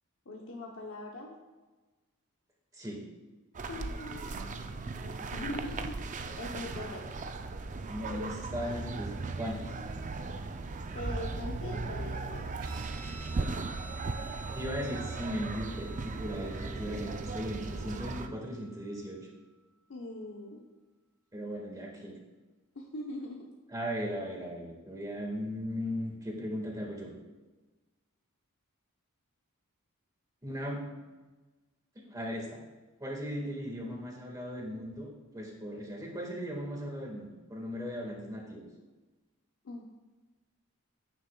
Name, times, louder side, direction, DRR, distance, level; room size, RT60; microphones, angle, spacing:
voice 1, 0.3-1.4 3.7-7.3 10.4-10.5 10.9-12.5 19.9-20.6 22.7-23.5 39.6-39.9, left 2 dB, 65° left, 0 dB, 0.8 m, -42 dB
sound 1, 3.5-18.3, right 3 dB, 35° right, 0.4 m, -37 dB
voice 2, 7.9-9.7 14.5-19.2 21.3-22.1 23.7-27.1 30.4-30.8 32.0-32.6 33.0-38.6, equal, 15° right, -1 dB, 1.7 m, -37 dB
Guitar, 12.6-19.5, right 3 dB, 75° right, 1.1 m, -51 dB
10.0 x 8.9 x 2.3 m, 1.2 s
head